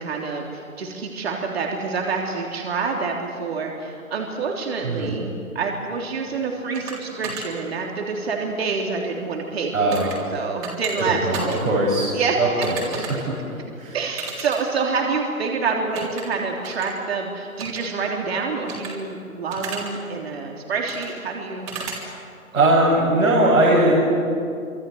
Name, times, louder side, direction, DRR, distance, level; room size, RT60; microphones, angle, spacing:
voice 1, 0.0-11.7 12.1-12.7 13.9-21.7 22.5-22.6, right 4 dB, 45° right, 1 dB, 3.5 m, -27 dB
sound 1, 6.7-6.9 7.2-7.4 9.9-10.2 10.6-10.9 11.3-11.6 12.6-13.1 14.2-14.6 15.9-16.2 16.6-16.9 17.6-17.8 18.7-18.9 19.5-19.9 20.9-21.1 21.7-22.0, right 5 dB, 15° right, 3.5 m, -32 dB
voice 2, 9.7-10.1 11.2-12.1 12.4-12.8 13.1-13.3 13.8-14.0 22.5-24.0, right 1 dB, 70° right, -3 dB, 7.5 m, -19 dB
27.5 x 25.5 x 8.0 m, 2.5 s
figure-of-eight pair, 150°, 43 cm